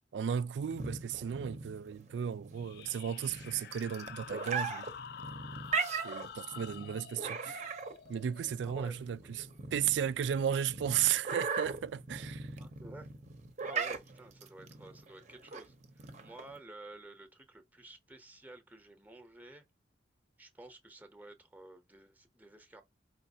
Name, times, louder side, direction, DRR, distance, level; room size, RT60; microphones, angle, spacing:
voice 1, 0.1-4.9 6.0-7.7 8.1-12.5, right 9 dB, 80° right, 0.3 m, -34 dB
sound 1, 0.6-16.6, right 4 dB, 40° right, 0.7 m, -39 dB
sound 2, 2.5-9.8, left 8 dB, 60° left, 0.3 m, -49 dB
voice 2, 8.6-9.0 12.6-13.1 13.6-19.6 20.4-22.8, right 2 dB, 10° right, 0.8 m, -52 dB
4.9 x 3.2 x 2.7 m
head